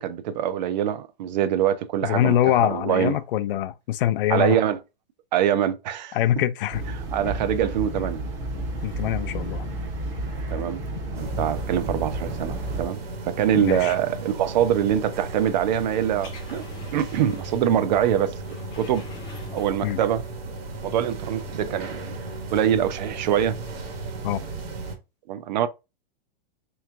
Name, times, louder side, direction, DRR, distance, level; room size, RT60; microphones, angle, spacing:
voice 1, 0.0-3.2 4.3-4.8 5.3-6.2 6.9-8.2 10.5-10.8 11.1-13.0 13.3-16.7 16.9-18.4 18.8-19.0 19.5-20.2 20.8-22.1 22.5-23.6 25.3-25.7, right 10 dB, 50° right, 0.4 m, -24 dB
voice 2, 2.0-4.6 6.1-6.8 8.8-9.7 13.5-13.9 19.8-20.0 24.2-24.4, left 12 dB, 65° left, 0.4 m, -24 dB
sound 1, 6.7-12.9, right 1 dB, 30° right, 0.8 m, -31 dB
sound 2, 11.1-25.0, right 3 dB, 80° right, 1.6 m, -35 dB
sound 3, 15.8-17.8 18.0-20.0 20.4-20.5, left 4 dB, 15° left, 0.6 m, -45 dB
3.3 x 3.1 x 3.5 m
supercardioid pair, 175°, 30 cm